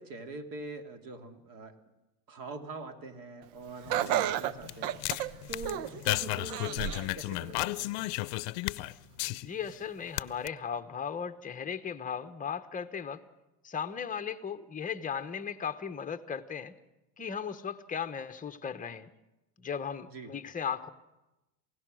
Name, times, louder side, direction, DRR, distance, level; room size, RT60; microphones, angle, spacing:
voice 1, 0.0-1.7 2.3-4.9 5.5-8.1 20.1-20.3, right 2 dB, 45° right, 6 dB, 2.5 m, -43 dB
sound 1, 3.8-9.8 10.1-10.5, left 21 dB, 65° left, 0.7 m, -34 dB
Laughter, 3.9-6.0 6.5-7.1 7.6-7.7 8.7-8.8, right 11 dB, 70° right, 0.9 m, -32 dB
voice 2, 9.4-13.2 13.6-16.7 17.2-19.1 19.6-20.9, left 7 dB, 15° left, 9 dB, 1.0 m, -36 dB
28.0 x 17.0 x 6.3 m, 0.99 s
supercardioid pair, 130°, 49 cm